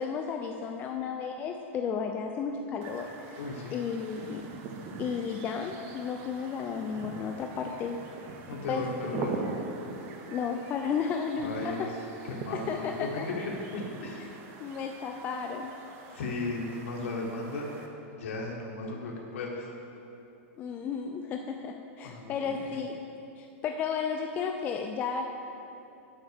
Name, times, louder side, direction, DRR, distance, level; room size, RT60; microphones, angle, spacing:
voice 1, 0.0-3.4 3.7-4.5 5.0-8.0 8.7-8.9 10.3-11.9 12.5-13.3 14.6-15.7 20.6-23.0 23.4-25.3, left 6 dB, 20° left, 3 dB, 0.3 m, -33 dB
sound 1, 2.8-17.9, right 4 dB, 35° right, 0.8 m, -42 dB
voice 2, 3.4-3.7 8.5-9.6 11.4-12.0 12.3-14.3 16.1-17.6 18.1-19.7 22.0-22.7, left 3 dB, 75° left, -2 dB, 1.3 m, -36 dB
7.7 x 5.7 x 6.5 m, 2.9 s
supercardioid pair, 155°, 8 cm